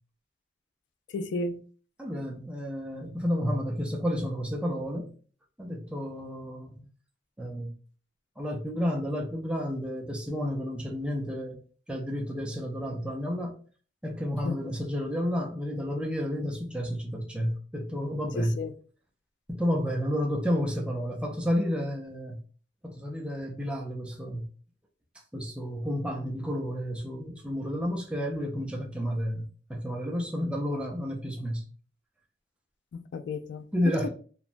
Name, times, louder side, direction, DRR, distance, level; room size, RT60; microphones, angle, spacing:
voice 1, 1.1-1.6 14.4-14.7 18.4-18.7 32.9-34.1, left 3 dB, 75° left, 0.3 m, -34 dB
voice 2, 2.0-5.1 5.6-6.9 7.4-7.7 8.4-11.6 11.9-13.6 14.0-18.5 19.5-22.4 22.8-24.5 25.3-29.4 29.7-31.7 33.7-34.1, equal, 5° right, 0.4 m, -31 dB
3.0 x 2.1 x 2.4 m
head